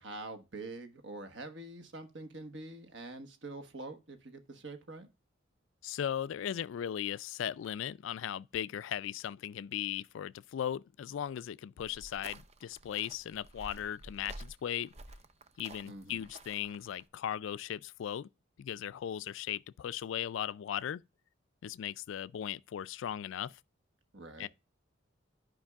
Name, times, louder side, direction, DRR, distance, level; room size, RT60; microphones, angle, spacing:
voice 1, 0.0-5.1 15.8-16.3 24.1-24.5, right 2 dB, 65° right, 1.3 m, -45 dB
voice 2, 5.8-14.9 15.6-18.3 18.6-21.0 21.6-23.6 24.4-24.5, left 10 dB, 70° left, 0.3 m, -37 dB
sound 1, 11.8-17.0, right 2 dB, 35° right, 0.6 m, -51 dB
11.5 x 5.2 x 2.3 m
head